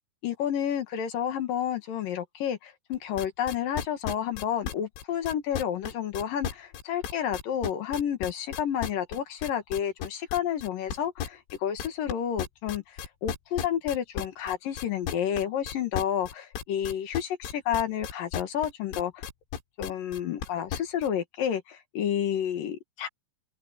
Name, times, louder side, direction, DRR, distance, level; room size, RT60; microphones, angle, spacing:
voice 1, 0.2-19.2 19.8-23.1, left 9 dB, 60° left, 2.7 m, -30 dB
sound 1, 2.9-21.1, left 9 dB, 85° left, 4.5 m, -34 dB
open air
omnidirectional pair, 5.3 m